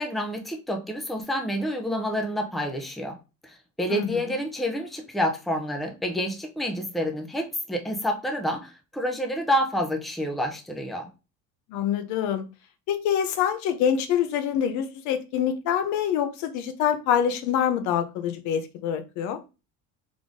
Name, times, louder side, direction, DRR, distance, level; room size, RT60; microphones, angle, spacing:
voice 1, 0.0-3.2 3.4-11.1, equal, ahead, 3 dB, 0.6 m, -28 dB
voice 2, 11.7-12.4 12.9-19.4, left 9 dB, 65° left, 10 dB, 0.8 m, -25 dB
3.7 x 3.6 x 3.6 m, 0.30 s
cardioid pair, 150°, 31 cm